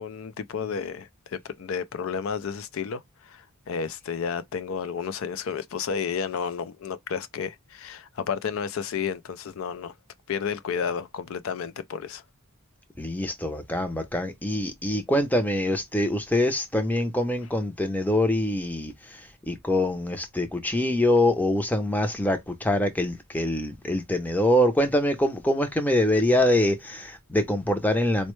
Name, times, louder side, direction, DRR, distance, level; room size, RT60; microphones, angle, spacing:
voice 1, 0.0-9.9 10.3-12.2, left 6 dB, 65° left, 0.4 m, -32 dB
voice 2, 13.0-28.3, left 1 dB, 10° left, 0.5 m, -24 dB
4.2 x 2.1 x 3.0 m
head